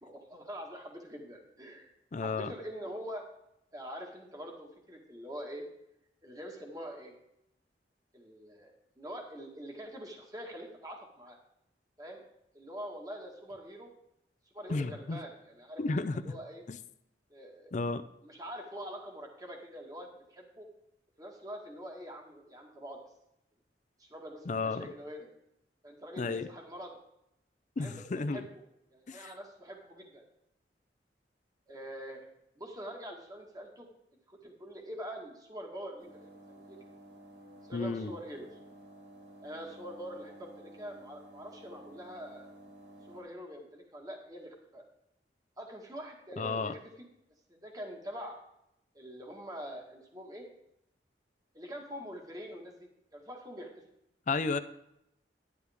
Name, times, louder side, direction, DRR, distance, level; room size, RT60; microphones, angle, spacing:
voice 1, 0.0-1.9 2.2-3.3 3.7-5.6 6.2-7.1 8.1-11.4 12.0-12.2 12.5-13.9 14.5-15.8 16.1-16.6 17.3-17.7 18.2-20.7 21.2-23.0 24.0-25.3 25.8-26.9 27.8-28.4 28.9-30.2 31.7-32.3 32.6-33.9 34.3-36.8 37.7-38.5 39.4-42.5 43.1-44.8 45.6-46.8 47.5-48.4 48.9-50.5 51.5-53.7, equal, 20° right, 1 dB, 1.6 m, -44 dB
voice 2, 2.1-2.5 14.7-15.2 15.8-16.2 16.7-16.8 17.7-18.0 24.5-24.9 26.2-26.5 27.8-28.5 29.1-29.3 37.7-38.1 46.4-46.8 54.3-54.6, left 3 dB, 45° left, 11 dB, 0.5 m, -32 dB
sound 1, 36.0-43.2, right 1 dB, 80° right, 4.6 m, -53 dB
12.0 x 9.8 x 3.5 m, 0.79 s
head